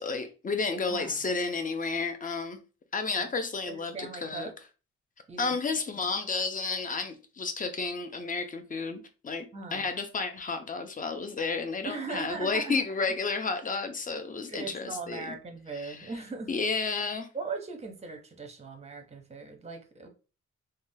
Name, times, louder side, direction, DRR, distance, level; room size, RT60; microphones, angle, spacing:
voice 1, 0.0-2.6 2.9-4.5 5.4-9.5 9.7-15.3 15.7-16.1 16.5-17.3, left 4 dB, 30° left, 0.5 m, -31 dB
voice 2, 0.9-1.2 3.2-3.3 3.7-4.5 5.3-5.5 5.9-6.1 9.5-9.9 11.8-12.8 14.5-16.5 17.3-20.1, right 4 dB, 20° right, 0.6 m, -39 dB
3.5 x 2.3 x 2.6 m
wide cardioid pair, 125°, 30 cm